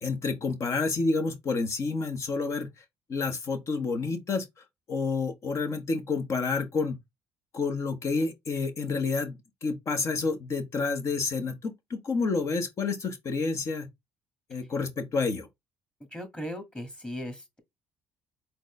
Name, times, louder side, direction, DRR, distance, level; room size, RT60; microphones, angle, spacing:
voice 1, 0.0-2.7 3.1-4.4 4.9-7.0 7.5-13.9 14.5-15.5, left 4 dB, 50° left, 1.3 m, -29 dB
voice 2, 16.1-17.6, equal, 15° left, 2.0 m, -38 dB
4.2 x 3.0 x 3.3 m
supercardioid pair, 70°, 7 cm